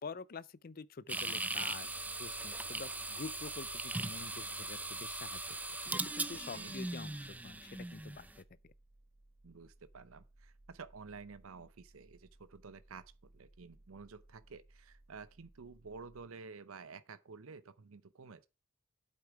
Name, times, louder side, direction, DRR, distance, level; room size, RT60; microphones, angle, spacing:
voice 1, 0.0-5.4 5.9-8.3 8.6-8.7, left 4 dB, 45° left, 0.5 m, -47 dB
sound 1, 1.1-8.3, right 2 dB, 5° right, 0.5 m, -39 dB
sound 2, 1.8-16.3, right 1 dB, 65° right, 1.7 m, -63 dB
voice 2, 9.4-18.5, right 4 dB, 85° right, 0.7 m, -51 dB
8.4 x 8.2 x 4.7 m
head